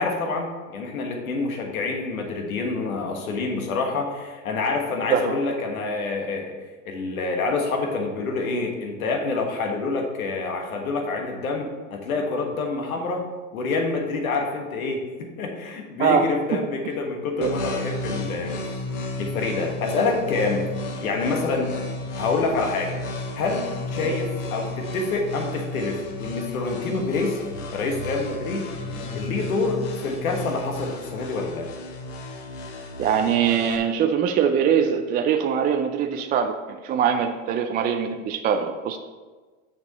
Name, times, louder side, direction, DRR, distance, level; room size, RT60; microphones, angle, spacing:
voice 1, 0.0-6.5 6.8-13.2 13.5-18.5 19.2-20.7 21.0-21.7 22.1-23.0 23.4-27.4 27.7-28.7 29.1-31.7, left 3 dB, 85° left, 2 dB, 1.5 m, -27 dB
voice 2, 16.0-16.7 17.4-17.6 24.0-24.2 33.0-39.0, right 7 dB, 25° right, 6 dB, 0.3 m, -23 dB
sound 1, 17.4-33.8, left 2 dB, 60° left, 1.5 m, -33 dB
7.1 x 6.2 x 4.1 m, 1.3 s
hypercardioid pair, 105°, 41 cm